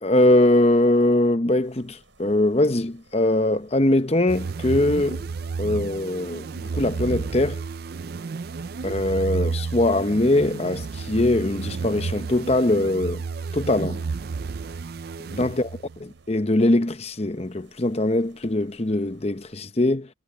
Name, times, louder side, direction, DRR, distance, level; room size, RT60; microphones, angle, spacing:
voice 1, 0.0-5.2 5.6-7.6 8.8-13.2 13.5-14.0 15.4-15.7 16.0-20.1, left 1 dB, 30° left, 0.8 m, -22 dB
sound 1, 1.6-19.5, right 2 dB, 70° right, 7.5 m, -58 dB
sound 2, 4.3-16.0, right 4 dB, 50° right, 0.4 m, -31 dB
head